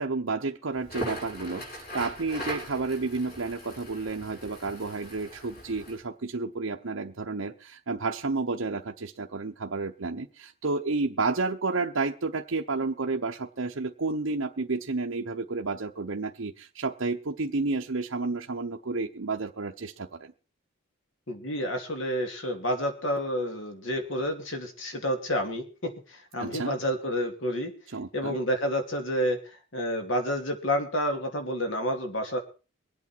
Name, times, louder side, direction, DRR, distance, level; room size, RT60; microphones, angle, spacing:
voice 1, 0.0-20.3 26.4-26.7 27.9-28.4, right 3 dB, 65° right, 0.8 m, -31 dB
Crackle, 0.8-6.0, equal, 45° left, 5.5 m, -40 dB
voice 2, 21.3-27.7 28.1-29.4 29.7-32.4, equal, 60° left, 2.8 m, -29 dB
23.0 x 8.5 x 4.5 m
head